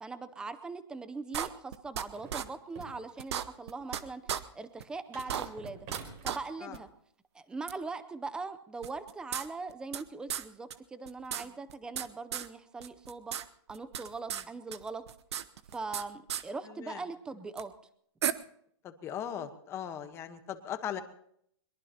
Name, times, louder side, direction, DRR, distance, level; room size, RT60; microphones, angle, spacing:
voice 1, 0.0-5.8 6.2-6.9 7.3-13.3 13.7-15.0 15.7-17.7, right 3 dB, 5° right, 12 dB, 0.6 m, -41 dB
sound 1, 1.3-2.0 2.3-2.4 2.8-2.9 3.2-4.0 4.3-4.4 4.8-4.9 5.2-6.0 6.2-6.4 6.7-6.8 7.7-7.8 8.8-10.0 10.3-10.4 10.7-10.8 11.1-12.1 12.3-12.5 12.8-13.4 13.7-14.4 14.7-16.0 16.3-16.4 17.6-17.7 18.2-18.3, right 9 dB, 70° right, 0.9 m, -34 dB
sound 2, 2.1-3.6 5.1-6.5, right 5 dB, 35° right, 4.1 m, -48 dB
voice 2, 16.6-17.0 18.8-21.0, left 9 dB, 15° left, 9 dB, 1.1 m, -39 dB
22.5 x 22.0 x 2.9 m, 0.70 s
hypercardioid pair, 160°, 15 cm